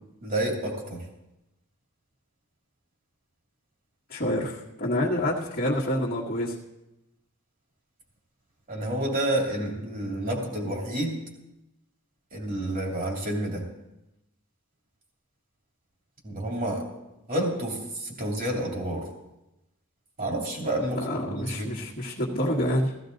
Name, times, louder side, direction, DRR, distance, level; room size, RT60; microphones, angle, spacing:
voice 1, 0.2-1.0 8.7-11.2 12.3-13.7 16.2-16.9 17.3-19.1 20.2-21.7, right 1 dB, 40° right, 0 dB, 2.9 m, -29 dB
voice 2, 4.1-6.6 20.9-22.9, left 1 dB, 40° left, -9 dB, 1.7 m, -27 dB
15.0 x 15.0 x 4.0 m, 0.94 s
head